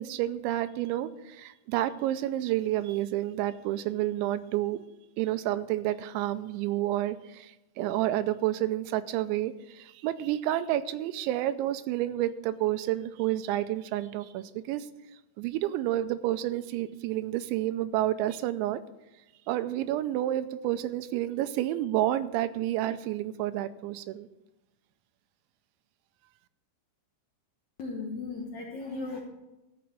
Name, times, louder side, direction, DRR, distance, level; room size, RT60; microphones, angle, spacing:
voice 1, 0.0-4.9 5.2-14.9 15.4-18.8 19.5-24.3, right 14 dB, 90° right, 12 dB, 2.9 m, -30 dB
voice 2, 27.8-29.2, left 3 dB, 80° left, -1 dB, 1.6 m, -36 dB
13.5 x 5.9 x 7.3 m, 0.99 s
omnidirectional pair, 5.2 m